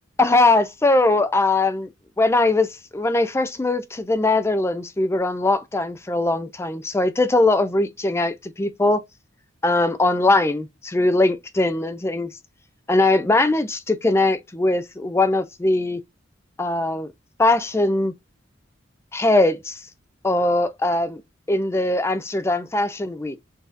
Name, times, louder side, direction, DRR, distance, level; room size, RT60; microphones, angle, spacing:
voice 1, 0.2-1.9 2.2-9.0 9.6-12.3 12.9-16.0 16.6-17.1 17.4-18.1 19.1-19.8 20.2-21.2 21.5-23.4, left 2 dB, 15° left, 0.3 m, -20 dB
6.0 x 2.7 x 2.4 m
head